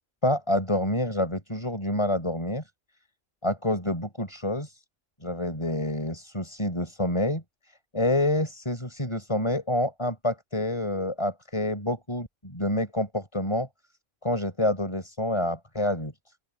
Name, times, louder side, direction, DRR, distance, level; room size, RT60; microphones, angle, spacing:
voice 1, 0.2-2.6 3.4-4.8 5.2-7.4 7.9-13.7 14.2-16.1, left 1 dB, 20° left, 5.4 m, -27 dB
open air
omnidirectional pair, 1.5 m